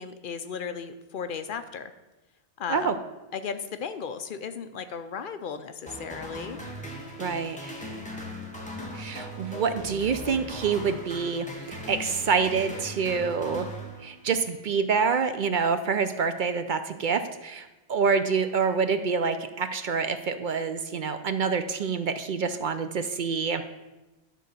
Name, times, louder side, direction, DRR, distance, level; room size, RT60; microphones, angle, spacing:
voice 1, 0.0-1.9 2.6-3.0 3.3-6.6, left 6 dB, 60° left, 10 dB, 0.7 m, -35 dB
sound 1, 5.9-14.4, equal, 5° left, 1.3 m, -39 dB
voice 2, 7.2-7.7 8.9-13.7 14.0-23.6, right 5 dB, 60° right, 10 dB, 0.6 m, -27 dB
11.0 x 3.9 x 6.7 m, 1.1 s
omnidirectional pair, 1.1 m